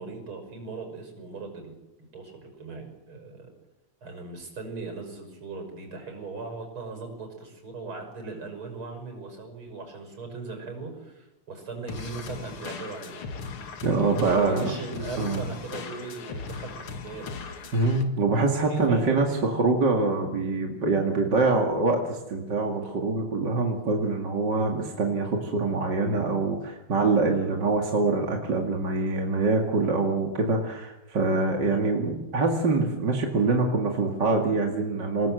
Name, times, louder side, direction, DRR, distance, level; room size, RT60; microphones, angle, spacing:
voice 1, 0.0-1.7 2.1-3.5 4.0-13.2 14.1-17.3 18.7-19.5, right 3 dB, 75° right, 5 dB, 6.8 m, -38 dB
sound 1, 11.9-18.0, left 5 dB, 80° left, 2.7 m, -38 dB
voice 2, 13.8-14.7 15.2-15.5 17.7-35.3, right 3 dB, 55° right, 1 dB, 2.9 m, -25 dB
27.0 x 19.5 x 7.8 m, 0.97 s
omnidirectional pair, 2.3 m